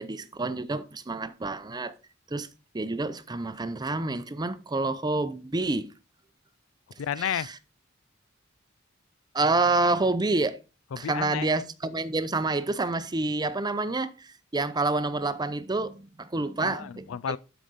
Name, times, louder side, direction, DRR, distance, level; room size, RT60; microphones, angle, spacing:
voice 1, 0.0-1.9 2.3-2.5 2.7-5.9 7.3-7.5 9.3-10.6 11.0-14.1 14.5-17.0, right 2 dB, 20° right, 0.6 m, -28 dB
voice 2, 7.0-7.5 10.9-11.5 16.6-17.4, left 8 dB, 80° left, 0.4 m, -31 dB
12.5 x 5.1 x 4.0 m
head